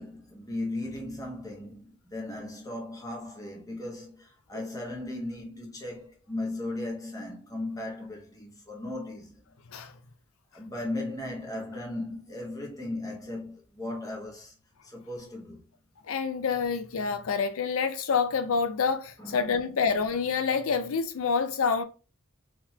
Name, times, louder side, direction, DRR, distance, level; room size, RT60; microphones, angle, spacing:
voice 1, 0.0-9.4 10.5-14.5 14.8-15.7 19.2-19.6, left 2 dB, 15° left, 1.0 m, -37 dB
voice 2, 16.1-21.8, left 5 dB, 75° left, 0.5 m, -27 dB
3.7 x 2.9 x 2.3 m
head